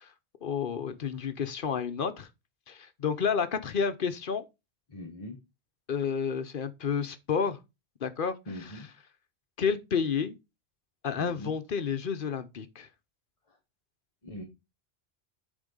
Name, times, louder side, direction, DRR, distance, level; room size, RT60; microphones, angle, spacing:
voice 1, 0.4-2.3 2.7-4.4 5.9-7.6 8.0-8.4 8.6-8.7 9.6-10.3 11.0-12.9, left 6 dB, 55° left, 0.9 m, -30 dB
voice 2, 4.9-5.4 8.5-8.9 11.2-11.6 13.5-13.6 14.2-14.4, left 1 dB, 35° left, 1.1 m, -41 dB
8.5 x 3.6 x 5.3 m
omnidirectional pair, 1.1 m